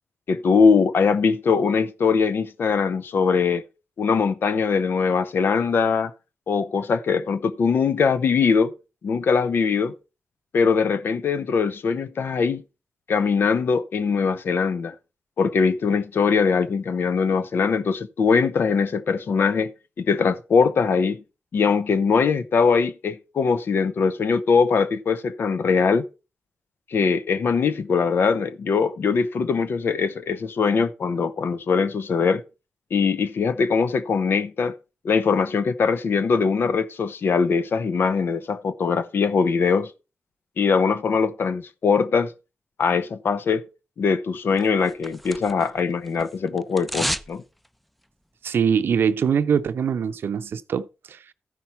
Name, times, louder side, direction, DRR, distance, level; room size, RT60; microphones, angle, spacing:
voice 1, 0.3-3.6 4.0-6.1 6.5-8.7 9.0-9.9 10.5-12.6 13.1-14.9 15.4-19.7 20.0-21.2 21.5-26.1 26.9-32.4 32.9-34.8 35.0-39.9 40.6-42.3 42.8-43.6 44.0-47.4, left 5 dB, 70° left, 0.8 m, -21 dB
sound 1, 44.6-45.8 46.1-47.3 47.6-47.7, equal, ahead, 0.5 m, -30 dB
voice 2, 48.4-51.3, right 7 dB, 75° right, 0.6 m, -23 dB
13.5 x 5.6 x 4.5 m
cardioid pair, 55°, 4 cm